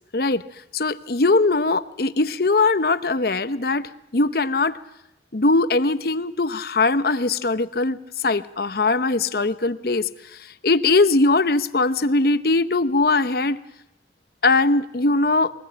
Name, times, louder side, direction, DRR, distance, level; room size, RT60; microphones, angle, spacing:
voice 1, 0.7-4.8 5.3-13.6 14.4-15.5, left 3 dB, 55° left, 12 dB, 0.9 m, -21 dB
22.5 x 18.0 x 8.8 m, 0.89 s
head